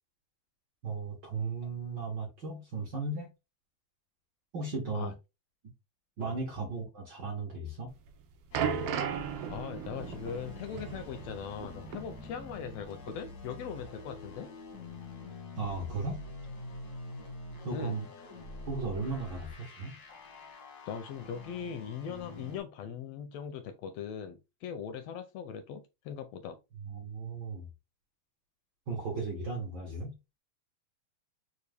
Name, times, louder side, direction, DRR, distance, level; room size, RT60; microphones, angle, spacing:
voice 1, 0.8-3.3 4.5-5.1 6.2-7.9 15.6-16.2 17.6-18.1 18.6-19.9 26.8-27.7 28.9-30.1, right 3 dB, 65° right, 1.1 m, -36 dB
sound 1, 7.9-12.8 13.1-13.3 14.0-14.1, right 7 dB, 85° right, 1.3 m, -36 dB
sound 2, 8.5-22.6, left 2 dB, 65° left, 0.9 m, -46 dB
voice 2, 9.5-14.5 17.7-18.0 20.9-26.6, left 7 dB, 80° left, 1.5 m, -40 dB
4.7 x 2.5 x 3.3 m
omnidirectional pair, 3.3 m